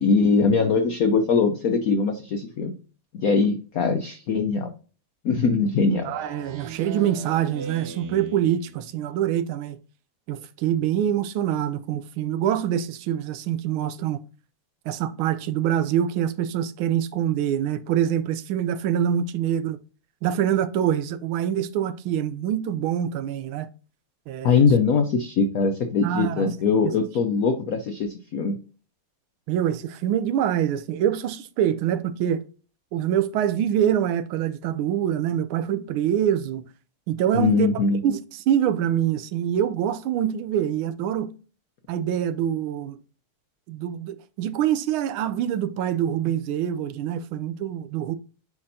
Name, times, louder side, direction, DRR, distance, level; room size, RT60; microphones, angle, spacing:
voice 1, 0.0-2.7 3.1-4.7 5.2-6.0 24.4-28.6 37.3-38.0, left 4 dB, 90° left, 0.7 m, -21 dB
Speech synthesizer, 5.9-8.9, right 4 dB, 60° right, 1.2 m, -39 dB
voice 2, 6.0-9.8 10.3-14.2 14.9-19.8 20.2-23.7 24.3-24.6 26.0-26.5 29.5-32.4 32.9-36.6 37.1-41.3 41.9-43.0 43.7-48.2, right 10 dB, 75° right, 1.4 m, -25 dB
8.6 x 4.3 x 2.7 m
omnidirectional pair, 2.4 m